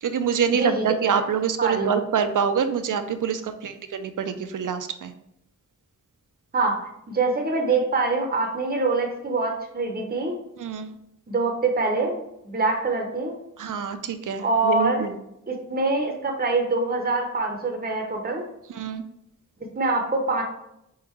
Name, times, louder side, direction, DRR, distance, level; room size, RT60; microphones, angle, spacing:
voice 1, 0.0-5.1 10.6-11.0 13.6-15.1 18.7-19.0, right 7 dB, 70° right, 9 dB, 0.5 m, -26 dB
voice 2, 1.6-2.0 6.5-6.8 7.1-10.4 11.3-13.4 14.4-15.1 15.5-18.4 19.8-20.4, right 3 dB, 30° right, 2 dB, 0.6 m, -24 dB
3.8 x 3.6 x 3.0 m, 0.82 s
wide cardioid pair, 60°, 32 cm